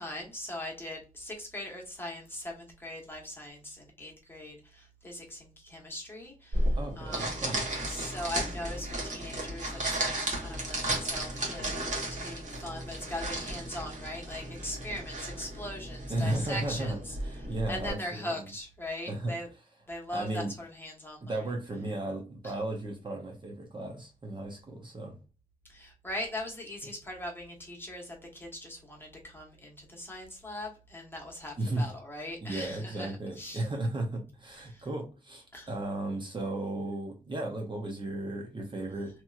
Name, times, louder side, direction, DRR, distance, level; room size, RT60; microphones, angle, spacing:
voice 1, 0.0-7.3 7.8-17.2 17.7-19.5 19.9-21.4 22.4-22.5 25.7-33.7 34.7-34.9 35.5-35.7, left 1 dB, 15° left, 0 dB, 1.0 m, -40 dB
sound 1, 6.5-17.9, right 1 dB, 55° right, 1.3 m, -34 dB
voice 2, 6.8-7.6 16.1-18.5 19.1-19.3 20.1-20.5 21.2-25.2 31.6-31.9 32.4-39.2, right 1 dB, 30° right, 2 dB, 0.7 m, -35 dB
2.9 x 2.8 x 2.3 m, 0.33 s
wide cardioid pair, 110°, 15 cm